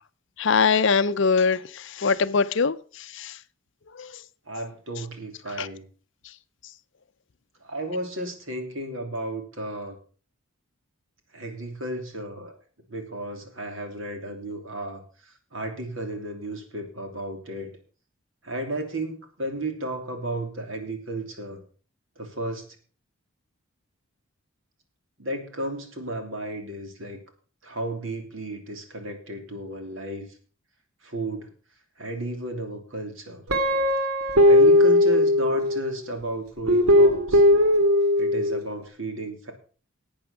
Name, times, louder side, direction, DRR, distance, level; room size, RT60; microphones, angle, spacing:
voice 1, 0.4-2.8 3.1-3.3 4.0-4.1 5.6-5.7, left 5 dB, 55° left, 0.6 m, -22 dB
voice 2, 4.5-5.8 7.6-10.0 11.3-12.6 12.9-15.0 15.5-17.7 18.4-21.6 22.2-22.6 25.2-27.2 27.6-30.3 31.0-31.5 32.0-33.4 34.4-37.4 38.2-39.5, right 1 dB, 65° right, 2.9 m, -33 dB
Guitar, 33.5-36.0 36.7-38.6, left 1 dB, 80° right, 2.0 m, -18 dB
12.0 x 8.7 x 5.7 m
head